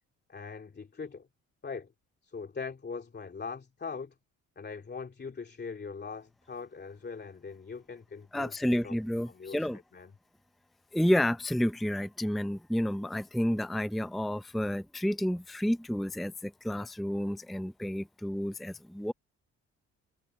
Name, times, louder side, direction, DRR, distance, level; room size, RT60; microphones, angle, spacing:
voice 1, 0.3-1.3 1.6-1.9 2.2-4.1 4.6-8.9 9.3-10.1, left 5 dB, 35° left, 2.9 m, -41 dB
voice 2, 8.3-9.8 10.9-19.1, equal, ahead, 0.6 m, -30 dB
cardioid pair, 90°, 30 cm